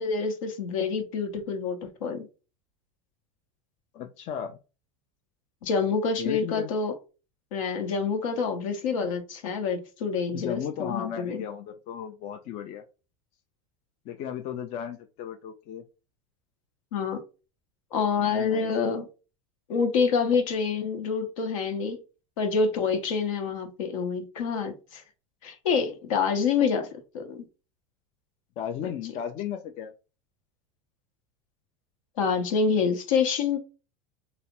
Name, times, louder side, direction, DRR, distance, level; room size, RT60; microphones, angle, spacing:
voice 1, 0.0-2.3 5.6-6.9 7.5-11.4 16.9-17.2 17.9-19.1 19.7-22.0 22.4-25.0 25.4-27.5 28.8-28.9 32.2-33.6, left 5 dB, 80° left, 0.8 m, -27 dB
voice 2, 3.9-4.6 6.2-6.7 10.3-12.8 14.1-15.8 18.2-19.0 28.6-29.9, left 9 dB, 45° left, 0.4 m, -35 dB
3.2 x 2.0 x 2.9 m
hypercardioid pair, 100°, 16 cm